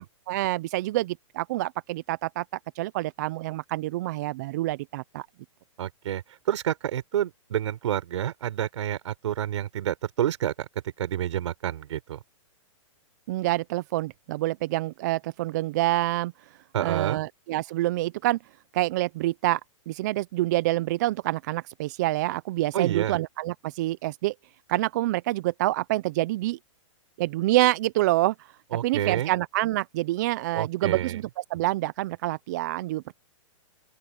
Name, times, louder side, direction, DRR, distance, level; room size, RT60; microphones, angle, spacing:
voice 1, 0.0-2.4 2.7-5.3 13.3-16.3 16.8-18.4 18.7-19.6 19.9-24.3 24.7-26.6 27.2-28.5 28.8-33.2, right 17 dB, 35° right, 0.4 m, -27 dB
voice 2, 5.8-10.7 11.0-12.2 16.7-17.2 22.7-23.2 28.7-29.3 30.5-31.2, right 11 dB, 65° right, 4.4 m, -29 dB
open air
hypercardioid pair, 160°, 17 cm